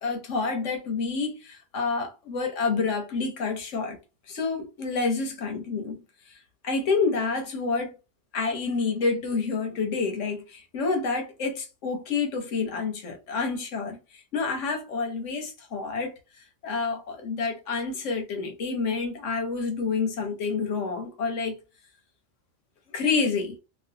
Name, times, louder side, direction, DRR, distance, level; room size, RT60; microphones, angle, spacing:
voice 1, 0.0-4.0 4.3-6.0 6.6-7.9 8.3-16.1 16.6-21.6 22.9-23.5, left 4 dB, 85° left, 1.2 m, -28 dB
3.0 x 2.4 x 2.7 m
omnidirectional pair, 1.2 m